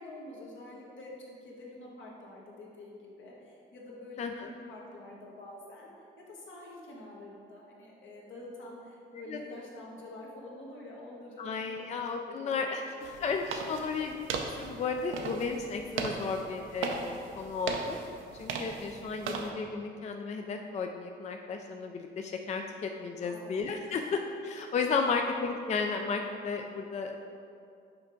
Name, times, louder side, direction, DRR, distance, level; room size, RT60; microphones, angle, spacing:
voice 1, 0.0-5.9 6.2-11.5 11.7-11.9 12.2-12.9 13.2-13.3 23.2-23.6 23.9-24.1 24.9-25.1, left 2 dB, 75° left, -3 dB, 1.3 m, -47 dB
voice 2, 4.2-4.5 9.3-9.4 11.4-18.0 18.3-27.2, left 4 dB, 35° left, 4 dB, 0.4 m, -34 dB
sound 1, 13.0-19.5, right 5 dB, 85° right, 0.6 m, -38 dB
5.8 x 4.4 x 3.8 m, 2.4 s
cardioid pair, 90°, 20 cm